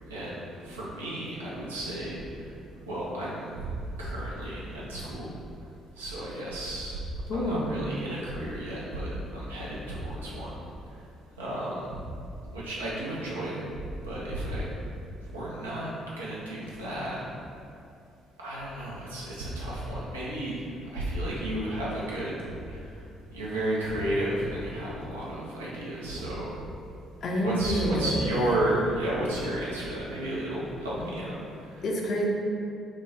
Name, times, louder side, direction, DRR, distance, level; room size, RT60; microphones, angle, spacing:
voice 1, 0.1-2.5 2.9-5.3 6.0-7.0 7.3-10.5 11.4-12.0 12.5-13.7 14.0-14.7 15.3-15.9 16.2-17.3 18.4-23.0 23.3-26.6 27.4-31.8, right 1 dB, 80° right, -6 dB, 0.5 m, -33 dB
voice 2, 7.3-7.8 27.2-28.3 31.8-32.2, equal, 50° left, -1 dB, 0.5 m, -28 dB
3.0 x 2.2 x 3.5 m, 2.5 s
figure-of-eight pair, 45°, 0 cm